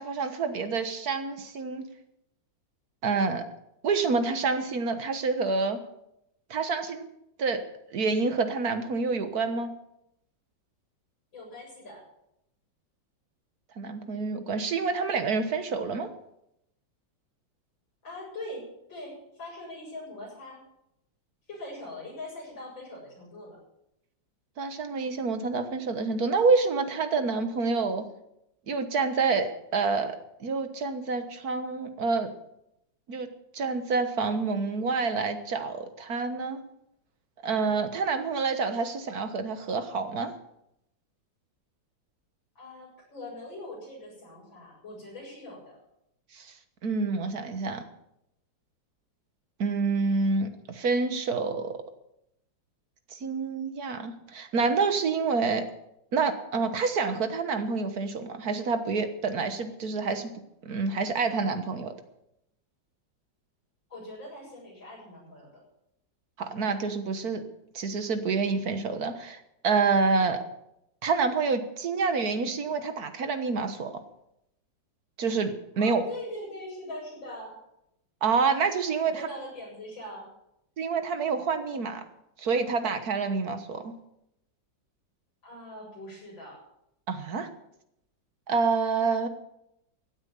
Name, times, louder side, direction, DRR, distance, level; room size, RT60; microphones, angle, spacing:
voice 1, 0.0-1.9 3.0-3.4 3.8-5.8 6.5-7.1 7.4-7.6 7.9-9.7 13.8-16.1 24.6-28.1 28.7-32.3 33.1-33.3 33.5-36.6 37.4-40.3 46.3-46.6 46.8-47.8 49.6-51.7 53.1-55.6 56.1-60.3 60.6-61.9 66.4-67.4 67.7-70.4 71.0-74.0 75.2-76.0 78.2-79.3 80.8-82.0 82.4-83.9 87.1-87.5 88.5-89.3, right 4 dB, 55° right, 8 dB, 1.7 m, -28 dB
voice 2, 11.3-12.0 18.0-20.6 21.5-23.6 42.5-45.8 63.9-65.6 75.8-77.6 79.0-80.3 85.4-86.6, left 1 dB, 75° left, -3 dB, 8.2 m, -42 dB
16.0 x 9.0 x 7.1 m, 0.80 s
omnidirectional pair, 2.1 m